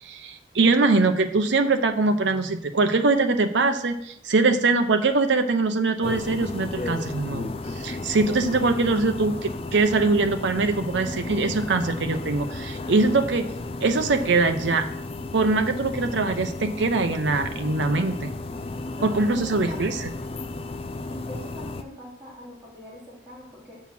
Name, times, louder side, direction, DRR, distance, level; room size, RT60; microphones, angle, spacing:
voice 1, 0.0-13.5 13.8-14.9 15.3-18.3 19.0-20.1, right 3 dB, 85° right, 7 dB, 0.7 m, -22 dB
sound 1, 6.0-21.8, left 2 dB, 30° left, 0.4 m, -34 dB
voice 2, 18.9-19.9 21.1-23.8, left 1 dB, 10° right, -7 dB, 3.5 m, -42 dB
7.2 x 5.7 x 6.0 m, 0.75 s
head